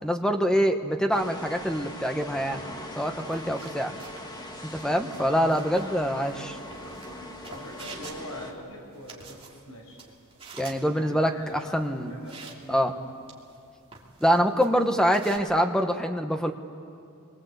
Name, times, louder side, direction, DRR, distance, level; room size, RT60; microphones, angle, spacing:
voice 1, 0.0-2.7 3.0-3.9 4.7-6.5 10.6-11.3 11.7-12.1 12.7-12.9 14.2-16.5, equal, 5° left, 5 dB, 1.2 m, -25 dB
sound 1, 1.1-8.5, left 1 dB, 20° left, 1.7 m, -41 dB
sound 2, 3.2-15.4, right 4 dB, 25° right, 2.7 m, -49 dB
voice 2, 5.1-10.0 10.9-12.8, equal, 75° left, 0 dB, 5.8 m, -43 dB
27.5 x 22.5 x 8.2 m, 2.5 s
head